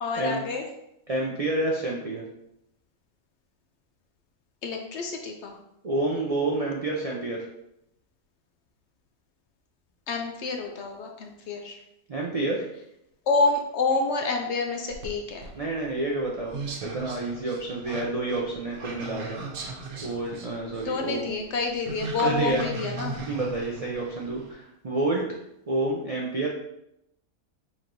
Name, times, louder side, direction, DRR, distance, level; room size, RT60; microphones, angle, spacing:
voice 1, 0.0-0.7 4.6-5.6 10.1-11.8 13.3-15.5 20.8-23.2, left 3 dB, 65° left, 3 dB, 0.7 m, -28 dB
voice 2, 1.1-2.2 5.8-7.4 12.1-12.7 15.6-19.4 20.0-21.3 22.2-22.6 23.3-25.3 25.7-26.5, right 2 dB, 70° right, -2 dB, 0.3 m, -29 dB
sound 1, 14.9-24.5, right 4 dB, 90° right, 1.3 m, -37 dB
4.5 x 4.1 x 2.6 m, 0.82 s
omnidirectional pair, 1.5 m